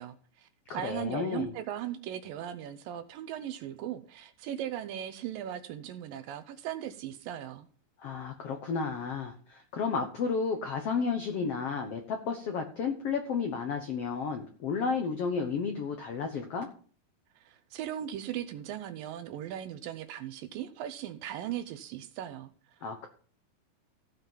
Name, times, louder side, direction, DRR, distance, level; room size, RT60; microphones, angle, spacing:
voice 1, 0.0-7.7 17.4-22.5, right 11 dB, 75° right, 11 dB, 2.3 m, -38 dB
voice 2, 0.7-1.5 8.0-16.7 22.8-23.1, left 5 dB, 75° left, 5 dB, 1.4 m, -32 dB
16.0 x 5.4 x 5.7 m, 0.43 s
omnidirectional pair, 4.4 m